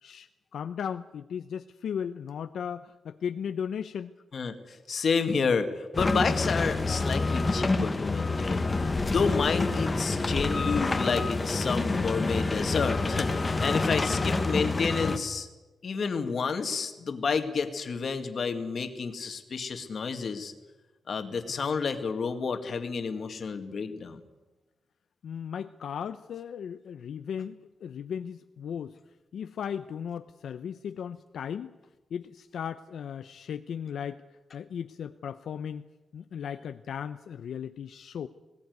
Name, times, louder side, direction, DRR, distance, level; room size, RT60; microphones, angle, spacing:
voice 1, 0.0-4.1 21.5-21.6 25.2-29.0 29.3-31.7 32.1-34.2 34.5-35.9 36.1-38.3, left 8 dB, 75° left, 9 dB, 0.7 m, -36 dB
voice 2, 4.9-8.7 9.1-15.5 15.8-20.5 21.1-24.2, left 5 dB, 45° left, 7 dB, 2.0 m, -30 dB
sound 1, 5.9-15.2, left 3 dB, 20° left, 1.3 m, -27 dB
20.0 x 17.5 x 9.4 m, 1.1 s
wide cardioid pair, 175°, 0 cm